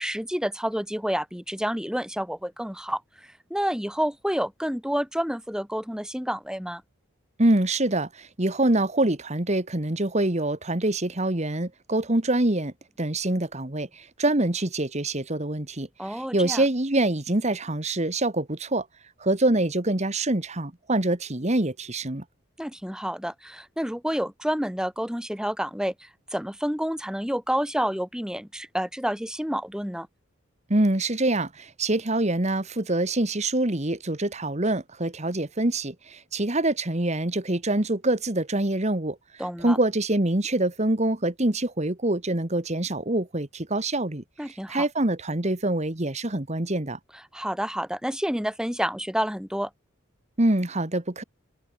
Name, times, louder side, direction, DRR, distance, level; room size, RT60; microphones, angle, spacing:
voice 1, 0.0-6.8 16.0-16.6 22.6-30.1 39.4-39.8 44.4-44.8 47.3-49.7, equal, 5° right, 6.8 m, -29 dB
voice 2, 7.4-18.9 19.2-22.2 30.7-39.2 39.6-47.0 50.4-51.2, right 2 dB, 35° right, 1.7 m, -25 dB
head